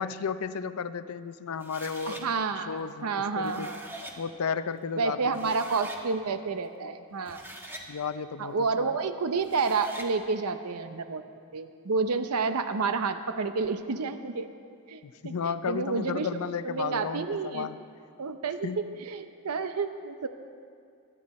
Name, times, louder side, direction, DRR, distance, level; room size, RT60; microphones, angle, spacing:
voice 1, 0.0-2.4 2.7-3.7 4.2-5.5 7.9-8.9 15.0-17.8 18.6-18.8, left 6 dB, 75° left, 13 dB, 0.5 m, -33 dB
sound 1, 1.6-2.2 3.2-4.2 5.0-5.1 5.3-6.0 7.1-7.9 9.4-10.1, right 1 dB, 10° right, 1.3 m, -43 dB
voice 2, 2.1-3.8 5.0-7.4 8.4-11.2 11.5-14.5 14.9-16.3 16.6-17.7 18.2-20.3, right 4 dB, 90° right, 9 dB, 0.6 m, -30 dB
23.5 x 10.0 x 4.2 m, 2.3 s
head